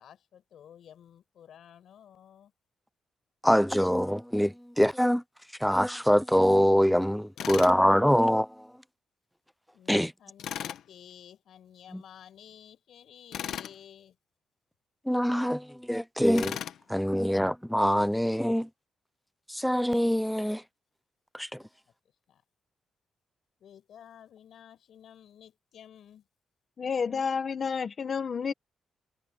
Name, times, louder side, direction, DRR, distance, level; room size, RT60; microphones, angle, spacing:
voice 1, 0.0-2.5 7.4-7.6 9.7-14.2 21.6-21.7 22.3-22.4 23.6-26.2, left 9 dB, 65° left, 7.2 m, -52 dB
voice 2, 3.4-5.2 5.6-8.5 9.9-10.1 15.1-16.6 16.9-18.7 19.5-20.6 21.4-21.5, equal, ahead, 0.3 m, -24 dB
Tools, 7.4-7.8 10.4-10.8 13.3-13.8 16.4-16.8, left 10 dB, 85° left, 1.4 m, -36 dB
voice 3, 26.8-28.5, left 6 dB, 40° left, 1.3 m, -30 dB
wide cardioid pair, 165°, 0 cm